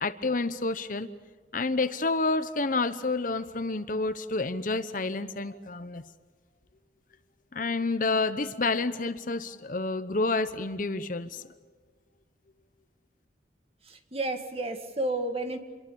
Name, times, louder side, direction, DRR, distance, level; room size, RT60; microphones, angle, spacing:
voice 1, 0.0-1.1 1.5-6.0 7.5-11.4, left 3 dB, 45° left, 12 dB, 1.0 m, -29 dB
voice 2, 13.9-15.6, right 2 dB, 30° right, 6 dB, 2.2 m, -31 dB
27.5 x 22.5 x 7.1 m, 1.4 s
head